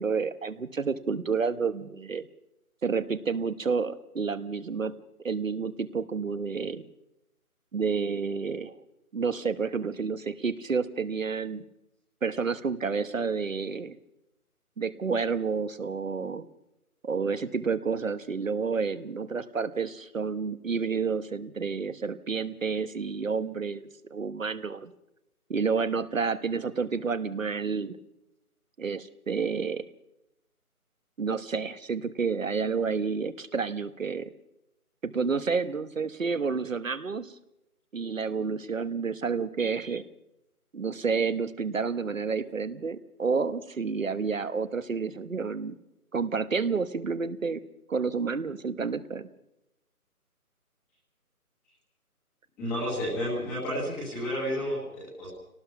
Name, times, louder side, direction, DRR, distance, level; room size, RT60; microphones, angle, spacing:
voice 1, 0.0-2.2 2.8-4.9 5.2-6.8 7.7-8.7 9.1-11.6 12.2-14.0 14.8-16.4 17.0-24.9 25.5-28.0 28.8-29.8 31.2-34.3 35.0-37.3 37.9-40.0 40.7-45.7 46.1-47.6 47.9-49.3, right 5 dB, 60° right, 13 dB, 1.2 m, -30 dB
voice 2, 52.6-55.3, equal, 5° left, -7 dB, 1.5 m, -31 dB
25.5 x 18.5 x 5.8 m, 0.87 s
figure-of-eight pair, 170°, 45 cm